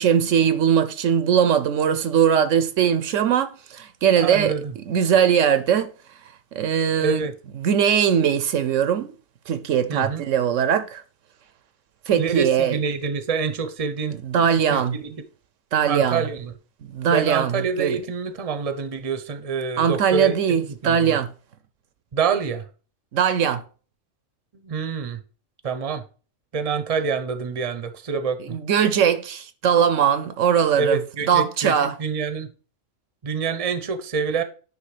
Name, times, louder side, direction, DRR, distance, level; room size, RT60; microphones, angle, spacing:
voice 1, 0.0-4.6 4.9-5.9 6.5-7.3 7.5-9.1 9.5-11.0 12.1-12.8 14.1-15.0 15.7-16.3 16.9-18.0 19.8-21.3 23.1-23.6 28.4-31.0 31.3-31.9, right 8 dB, 75° right, 1.1 m, -20 dB
voice 2, 4.2-4.7 6.8-7.3 9.9-10.2 12.2-14.2 14.7-14.8 15.9-16.5 17.1-20.4 20.8-21.2 22.1-22.7 24.6-25.2 25.6-26.0 26.5-28.6 30.8-32.5 33.2-34.4, right 5 dB, 35° right, 0.8 m, -26 dB
9.7 x 3.5 x 4.9 m
omnidirectional pair, 1.3 m